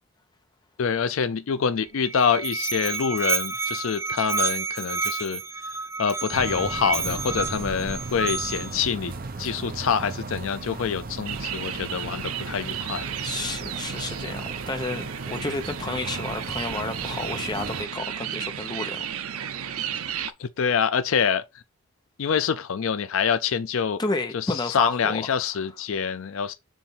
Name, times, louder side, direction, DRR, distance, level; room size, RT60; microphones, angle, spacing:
voice 1, 0.8-5.4 6.0-9.1 9.4-13.1 20.4-21.4 22.2-24.0 24.3-26.5, left 6 dB, 65° left, 0.4 m, -26 dB
Musical instrument, 1.8-8.8, right 4 dB, 10° right, 0.3 m, -30 dB
sound 1, 6.3-17.8, right 3 dB, 40° right, 0.7 m, -37 dB
sound 2, 11.2-20.3, right 8 dB, 80° right, 0.6 m, -33 dB
voice 2, 13.2-19.9 24.0-25.4, left 2 dB, 20° left, 0.9 m, -31 dB
7.2 x 2.6 x 5.5 m
head